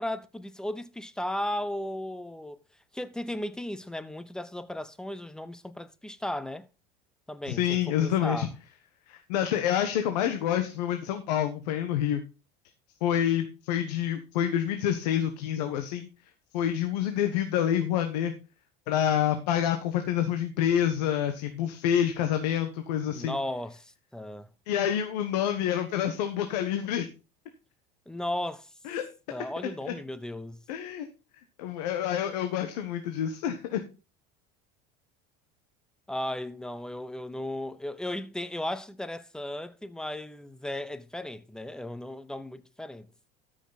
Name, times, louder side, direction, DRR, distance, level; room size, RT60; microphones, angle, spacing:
voice 1, 0.0-2.6 2.9-6.7 7.3-8.5 23.1-24.5 28.1-28.7 29.3-30.6 36.1-43.1, left 1 dB, 5° left, 0.6 m, -35 dB
voice 2, 7.5-8.5 9.1-12.2 13.0-16.1 16.5-18.3 18.9-23.4 24.7-27.1 28.8-29.0 29.9-30.0 30.7-31.1 31.6-33.8, left 10 dB, 90° left, 1.3 m, -27 dB
13.0 x 6.2 x 4.1 m
supercardioid pair, 130°, 20 cm